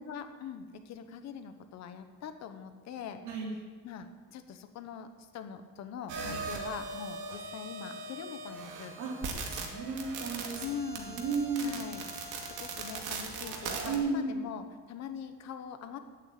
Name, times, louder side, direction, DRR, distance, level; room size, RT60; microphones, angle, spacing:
voice 1, 0.1-3.2 3.8-8.9 10.6-11.2 11.5-16.0, left 7 dB, 60° left, 8 dB, 1.2 m, -43 dB
sound 1, 6.1-14.0, right 4 dB, 90° right, 2.2 m, -39 dB
voice 2, 9.5-10.6 11.0-11.8 13.8-14.3, right 4 dB, 70° right, -1 dB, 3.4 m, -33 dB
10.0 x 8.3 x 8.4 m, 1.5 s
cardioid pair, 160°, 30 cm